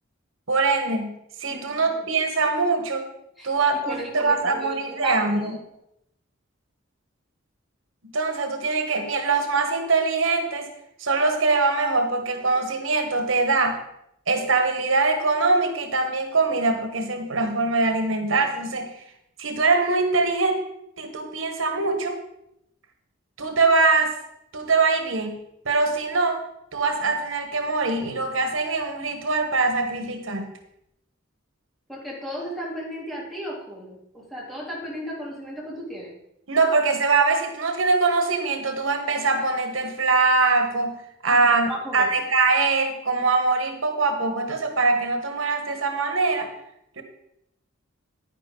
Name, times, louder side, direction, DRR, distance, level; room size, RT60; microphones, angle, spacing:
voice 1, 0.5-3.1 3.4-5.6 8.1-10.7 11.0-13.8 14.3-19.0 19.4-20.6 21.0-22.2 23.4-24.1 24.5-25.4 25.6-26.4 26.7-30.5 36.5-40.9 41.2-46.5 47.0-47.1, right 3 dB, 85° right, 5 dB, 1.4 m, -23 dB
voice 2, 1.5-2.1 3.4-3.5 3.9-5.6 31.9-36.1 41.3-41.4 41.7-42.1, equal, ahead, -6 dB, 3.4 m, -35 dB
10.5 x 9.9 x 3.9 m, 0.80 s
head